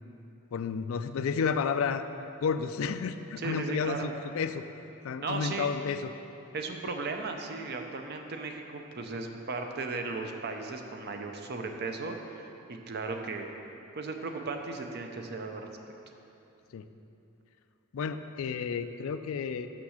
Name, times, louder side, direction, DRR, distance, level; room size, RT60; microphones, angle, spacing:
voice 1, 0.5-2.0 2.4-4.7 5.0-6.1 16.7-16.9 17.9-19.7, left 6 dB, 70° left, 10 dB, 0.4 m, -31 dB
voice 2, 3.4-4.1 5.2-5.7 6.5-13.5 14.0-15.7, right 3 dB, 50° right, 4 dB, 0.6 m, -36 dB
6.3 x 6.0 x 6.4 m, 2.8 s
head